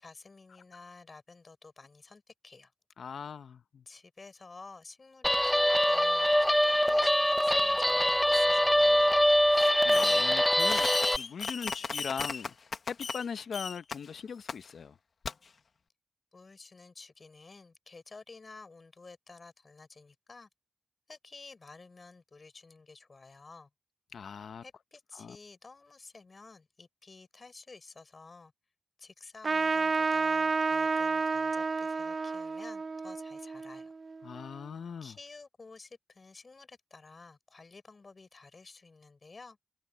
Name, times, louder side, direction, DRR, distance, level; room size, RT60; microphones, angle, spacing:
voice 1, 0.0-2.7 3.8-9.1 16.3-20.5 21.1-23.7 24.6-28.5 29.0-33.9 35.0-39.6, left 3 dB, 40° left, 5.0 m, -52 dB
voice 2, 3.0-3.8 9.5-10.9 11.1-12.5 12.9-14.9 24.1-24.6 25.2-25.4 34.2-35.1, left 6 dB, 75° left, 1.0 m, -40 dB
Guitar, 5.2-11.2, equal, 5° left, 0.6 m, -24 dB
Fireworks, 9.9-10.3 10.6-13.2 13.5-14.0 14.5-14.6 15.2-15.3, left 5 dB, 55° left, 1.3 m, -35 dB
Trumpet, 29.4-34.4, right 4 dB, 40° right, 0.4 m, -30 dB
open air
wide cardioid pair, 110°, 0 cm